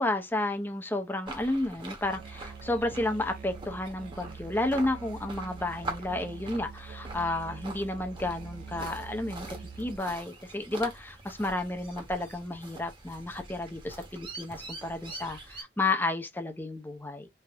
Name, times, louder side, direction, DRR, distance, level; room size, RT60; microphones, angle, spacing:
voice 1, 0.0-9.5 9.8-17.3, left 2 dB, 10° left, 0.6 m, -32 dB
sound 1, 1.3-15.6, right 2 dB, 30° right, 1.0 m, -44 dB
Musical instrument, 2.0-10.0, right 5 dB, 45° right, 0.3 m, -44 dB
3.4 x 2.5 x 3.3 m
head